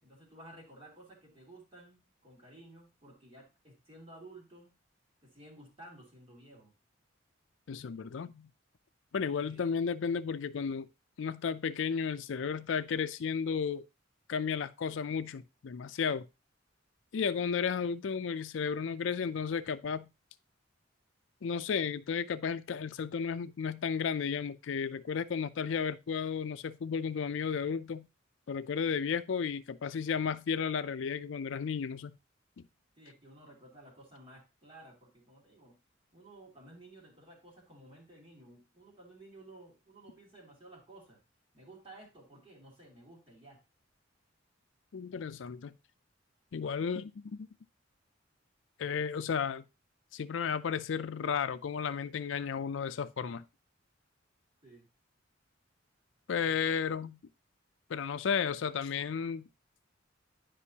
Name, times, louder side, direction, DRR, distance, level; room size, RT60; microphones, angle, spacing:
voice 1, 0.0-4.8 5.2-6.7 9.3-9.7 17.3-17.5 33.0-35.8 36.1-41.2 41.5-43.6 54.6-54.9 56.4-56.7, right 1 dB, 30° right, 2.7 m, -54 dB
voice 2, 7.7-8.5 9.1-10.9 11.2-13.9 14.3-16.3 17.1-20.1 21.4-28.1 28.5-32.1 32.6-32.7 44.9-45.7 46.5-47.5 48.8-49.6 50.1-53.4 56.3-57.2 57.9-59.5, left 6 dB, 70° left, 0.4 m, -33 dB
10.0 x 5.3 x 2.8 m
head